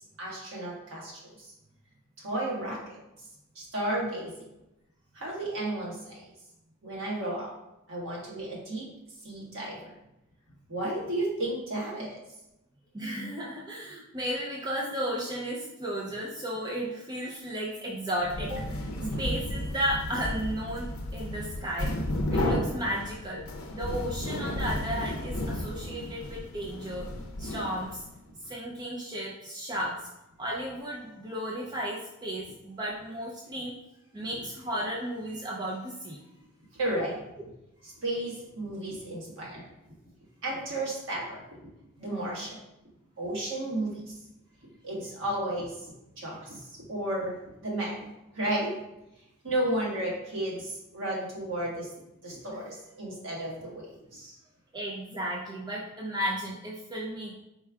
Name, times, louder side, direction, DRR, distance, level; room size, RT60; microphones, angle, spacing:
voice 1, 0.2-1.5 2.2-3.0 3.5-4.5 5.1-6.3 6.8-7.5 7.9-8.9 9.2-9.9 10.7-12.2 19.0-19.2 36.7-37.2 37.8-39.7 40.4-41.7 42.0-42.6 43.2-44.1 44.8-45.9 46.2-47.4 47.6-48.0 48.3-48.7 49.4-51.9 52.2-54.4, right 1 dB, 60° right, -5 dB, 1.5 m, -33 dB
voice 2, 12.9-18.9 19.2-22.0 22.3-23.4 23.7-27.1 27.4-28.1 28.5-30.1 30.4-33.7 34.1-36.2 54.7-57.4, equal, 20° right, -4 dB, 0.4 m, -34 dB
sound 1, 18.2-28.1, left 1 dB, 80° left, 0.5 m, -33 dB
4.3 x 2.4 x 4.5 m, 0.92 s
head